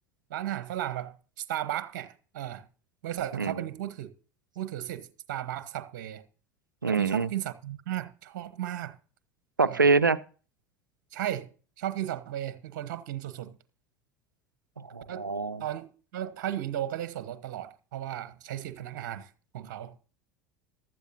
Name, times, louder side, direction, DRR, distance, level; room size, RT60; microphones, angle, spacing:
voice 1, 0.3-2.7 3.0-4.1 4.5-6.2 6.9-9.0 9.7-9.9 11.1-11.5 11.8-13.6 15.1-15.3 15.6-15.9 16.1-19.9, right 12 dB, 60° right, 1.1 m, -35 dB
voice 2, 6.8-7.3 9.6-10.2 14.8-15.6, right 4 dB, 90° right, 0.5 m, -25 dB
15.0 x 12.5 x 2.7 m
figure-of-eight pair, 75°, 10 cm